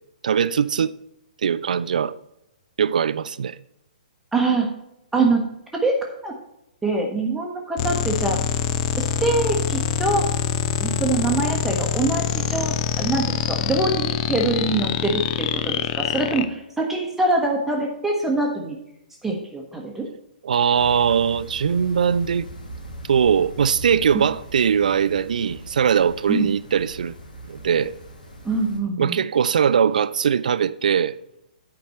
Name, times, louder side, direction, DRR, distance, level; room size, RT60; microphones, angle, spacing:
voice 1, 0.2-0.9 1.4-2.1 2.8-3.6 20.4-22.5 23.1-27.1 27.5-27.9 29.0-31.2, right 7 dB, 60° right, 0.3 m, -21 dB
voice 2, 4.3-4.7 5.1-5.4 5.7-6.0 6.2-6.3 6.8-8.4 9.2-10.3 10.8-18.8 19.2-20.1 26.3-26.5 28.4-29.2, right 3 dB, 5° right, 1.0 m, -24 dB
sound 1, 7.8-16.4, left 9 dB, 35° left, 0.6 m, -25 dB
sound 2, 20.7-28.8, right 1 dB, 70° left, 1.8 m, -40 dB
9.3 x 5.2 x 4.4 m
figure-of-eight pair, 120°, 5 cm